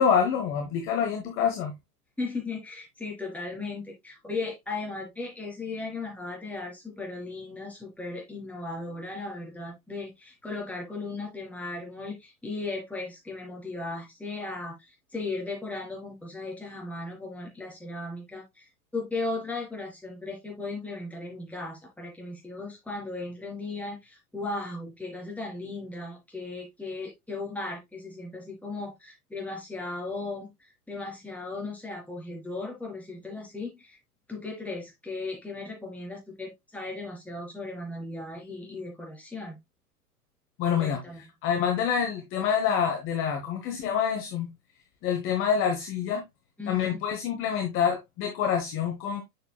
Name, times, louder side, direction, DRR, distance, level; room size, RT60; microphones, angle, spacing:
voice 1, 0.0-1.7 40.6-41.0 41.4-44.5 45.0-46.2 46.7-49.2, left 7 dB, 25° left, 1.3 m, -26 dB
voice 2, 2.2-34.0 34.3-39.6 40.8-41.2 46.6-47.0, left 3 dB, 5° left, 3.6 m, -36 dB
7.7 x 6.6 x 2.3 m
figure-of-eight pair, 105°, 47 cm